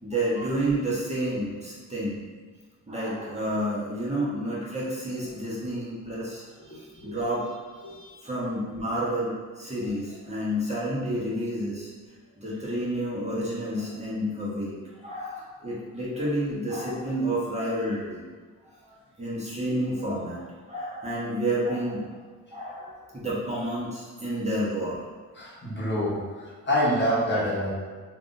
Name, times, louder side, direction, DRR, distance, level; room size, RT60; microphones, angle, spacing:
voice 1, 0.0-2.2 2.9-11.9 12.4-14.8 15.0-18.2 18.8-20.4 20.7-22.1 22.5-25.0 25.4-25.5, right 1 dB, 20° right, -8 dB, 1.2 m, -30 dB
voice 2, 25.3-27.7, equal, 30° left, -7 dB, 1.1 m, -27 dB
3.4 x 2.5 x 2.6 m, 1.5 s
supercardioid pair, 55°, 34 cm